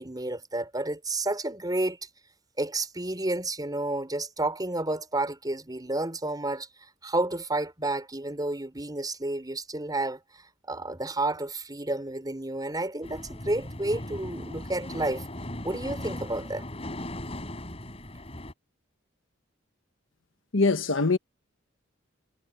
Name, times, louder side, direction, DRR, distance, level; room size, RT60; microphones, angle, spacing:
voice 1, 0.0-2.0 2.6-6.7 7.0-15.2 15.6-16.7, right 2 dB, 20° right, 5.2 m, -31 dB
sound 1, 13.0-18.5, left 1 dB, 30° left, 5.6 m, -38 dB
voice 2, 20.5-21.2, left 3 dB, 80° left, 1.4 m, -23 dB
head